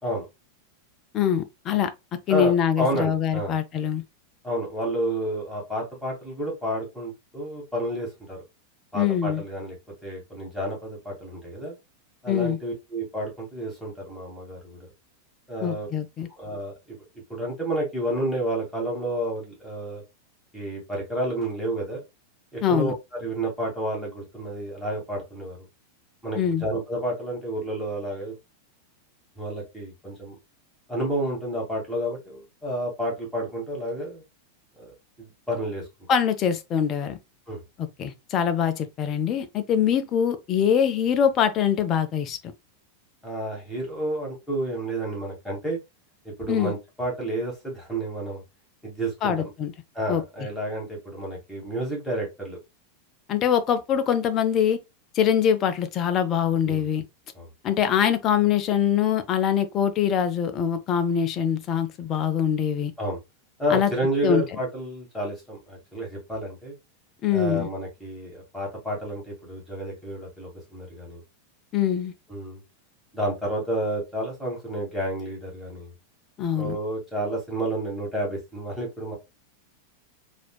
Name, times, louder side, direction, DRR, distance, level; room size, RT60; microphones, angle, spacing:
voice 1, 1.1-1.9 2.3-4.0 8.9-9.4 12.3-12.6 15.6-16.3 22.6-22.9 26.4-26.6 36.1-37.2 38.0-42.4 46.5-46.7 49.2-49.7 50.1-50.2 53.3-54.8 55.1-57.0 57.6-62.9 63.7-63.9 64.2-64.4 67.2-67.7 71.7-72.1 76.4-76.8, left 8 dB, 30° left, 0.5 m, -23 dB
voice 2, 2.3-3.6 4.4-8.4 8.9-9.8 10.0-11.7 12.2-14.9 15.5-15.9 16.4-17.0 17.3-20.0 20.5-22.0 22.5-22.9 23.2-25.6 26.2-28.4 29.4-30.4 30.9-34.2 34.8-34.9 35.2-35.9 37.5-37.6 43.2-45.8 46.2-48.4 48.8-49.5 49.9-52.6 56.7-56.8 57.3-57.5 63.0-63.2 63.6-66.7 67.3-71.2 72.3-72.6 73.1-75.9 76.5-79.2, right 1 dB, 5° left, 1.9 m, -30 dB
4.1 x 2.8 x 2.2 m
figure-of-eight pair, 90°, 0 cm